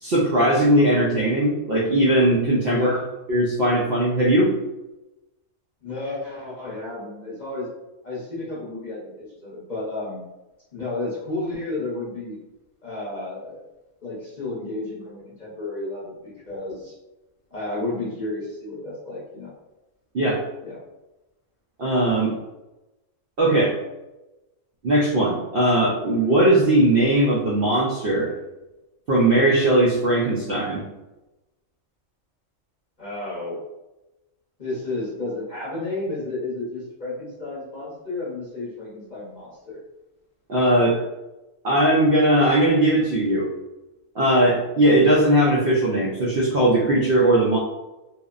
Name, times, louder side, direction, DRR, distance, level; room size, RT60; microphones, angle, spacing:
voice 1, 0.0-2.9 3.3-4.5 20.1-20.4 21.8-22.3 23.4-23.8 24.8-28.3 29.1-30.8 40.5-41.0 41.6-43.5 44.2-47.6, right 1 dB, 75° right, -4 dB, 0.5 m, -19 dB
voice 2, 2.7-3.1 5.8-7.7 8.0-10.2 10.7-12.4 12.8-13.6 14.0-16.9 17.5-19.5 20.6-20.8 33.0-33.7 34.6-39.8, left 2 dB, 40° left, -8 dB, 0.7 m, -32 dB
2.8 x 2.0 x 2.3 m, 1.0 s
omnidirectional pair, 1.5 m